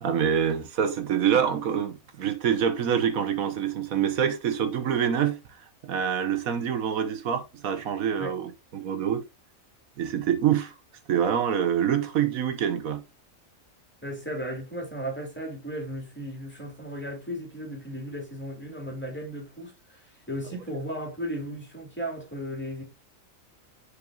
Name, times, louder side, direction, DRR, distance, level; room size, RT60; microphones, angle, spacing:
voice 1, 0.0-5.4 5.8-9.2 10.0-10.7 11.1-13.0, right 8 dB, 90° right, 1.4 m, -26 dB
voice 2, 14.0-22.8, equal, 10° left, 2.7 m, -35 dB
10.0 x 4.8 x 2.4 m
omnidirectional pair, 1.4 m